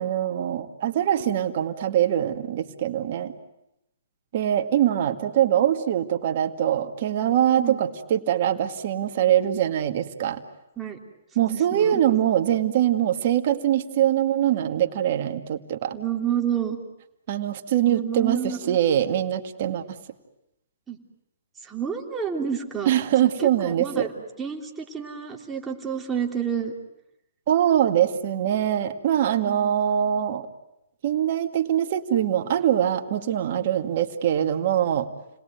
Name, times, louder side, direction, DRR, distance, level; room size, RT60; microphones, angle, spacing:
voice 1, 0.0-3.3 4.3-10.4 11.4-15.9 17.3-19.8 22.9-24.1 27.5-30.5 31.0-35.1, right 10 dB, 50° right, 6 dB, 2.1 m, -23 dB
voice 2, 11.4-12.0 15.9-16.8 17.8-18.8 20.9-21.0 21.6-22.9 23.2-26.7 29.4-29.8, right 8 dB, 10° right, 1 dB, 3.2 m, -29 dB
30.0 x 20.5 x 9.3 m, 0.86 s
hypercardioid pair, 145°, 0 cm